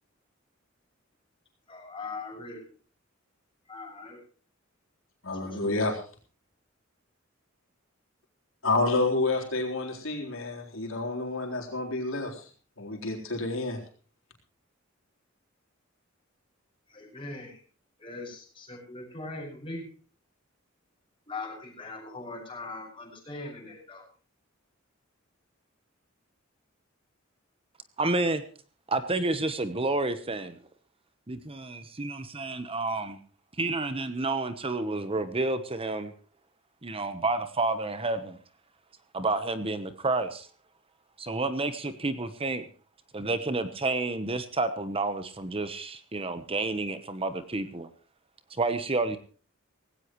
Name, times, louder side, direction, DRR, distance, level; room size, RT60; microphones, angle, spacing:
voice 1, 1.7-2.6 3.7-4.2 5.4-5.8 16.9-17.6 18.0-19.8 21.3-24.0, left 3 dB, 25° left, -1 dB, 6.5 m, -40 dB
voice 2, 5.2-6.0 8.6-12.4 12.8-13.8, left 2 dB, 85° left, 0 dB, 3.9 m, -29 dB
voice 3, 28.0-28.4 28.9-30.6 31.3-33.2 33.6-36.1 36.8-38.4 39.1-40.5 41.2-42.6 43.1-47.9 48.6-49.2, right 2 dB, 30° right, 11 dB, 1.0 m, -30 dB
18.0 x 17.0 x 3.1 m, 0.40 s
head